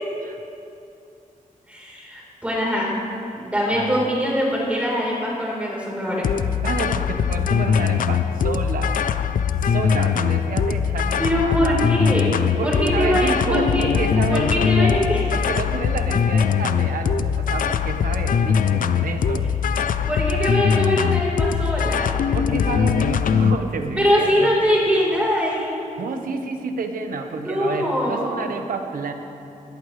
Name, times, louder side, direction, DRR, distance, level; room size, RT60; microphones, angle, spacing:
voice 1, 1.7-2.9 3.3-6.3 11.2-12.3 12.6-13.9 14.3-15.2 20.1-22.3 24.0-25.8 27.3-28.4, equal, 10° right, -4 dB, 4.0 m, -22 dB
sound 1, 6.2-23.6, left 7 dB, 75° left, 0.5 m, -21 dB
voice 2, 6.6-9.0 9.6-11.8 12.6-14.9 15.3-19.5 22.3-24.5 26.0-29.1, right 4 dB, 85° right, 5 dB, 1.1 m, -29 dB
20.5 x 14.5 x 3.3 m, 2.6 s
wide cardioid pair, 140°, 14 cm